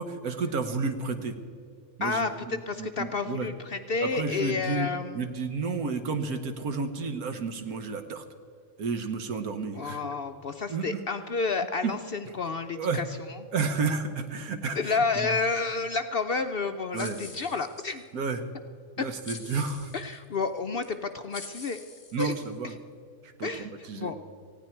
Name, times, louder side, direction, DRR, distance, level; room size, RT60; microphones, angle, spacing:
voice 1, 0.0-1.4 2.0-3.5 4.0-4.9 5.1-8.2 8.8-10.0 10.7-11.0 11.8-11.9 12.7-13.0 13.5-15.3 16.9-17.2 18.1-18.4 19.0-19.9 22.1-22.7 23.2-24.1, right 4 dB, 80° right, 7 dB, 1.5 m, -31 dB
voice 2, 2.0-5.3 9.7-13.1 14.7-18.0 19.0-19.1 19.9-21.8 22.2-22.3 22.6-22.7 23.4-24.1, left 4 dB, 60° left, 7 dB, 0.6 m, -30 dB
sound 1, 16.9-18.1 19.2-20.2 20.8-20.9 21.3-22.7, left 4 dB, 30° left, 1.4 m, -45 dB
19.5 x 15.5 x 4.5 m, 2.3 s
omnidirectional pair, 1.5 m